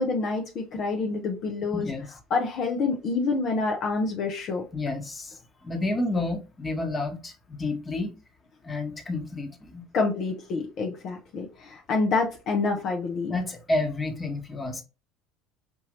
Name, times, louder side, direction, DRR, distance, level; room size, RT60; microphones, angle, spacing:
voice 1, 0.0-1.9 2.3-4.6 9.9-13.4, left 3 dB, 50° left, 0.8 m, -27 dB
voice 2, 1.7-2.1 4.7-8.1 8.6-9.8 13.3-14.8, left 2 dB, 25° left, 1.3 m, -30 dB
5.3 x 2.7 x 3.1 m
hypercardioid pair, 70°, 0 cm